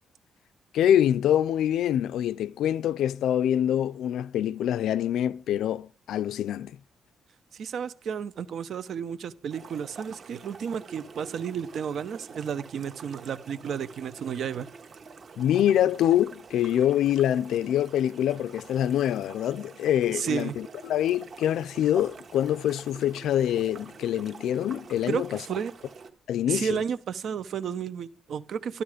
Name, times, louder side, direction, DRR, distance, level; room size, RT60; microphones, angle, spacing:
voice 1, 0.7-6.8 15.4-25.4 26.3-26.8, left 11 dB, 90° left, 0.5 m, -25 dB
voice 2, 7.5-14.7 20.1-20.6 25.1-25.7 26.5-28.8, right 7 dB, 55° right, 1.0 m, -32 dB
sound 1, 9.5-26.1, right 5 dB, 35° right, 1.5 m, -47 dB
14.0 x 12.5 x 5.1 m
wide cardioid pair, 180°, 0 cm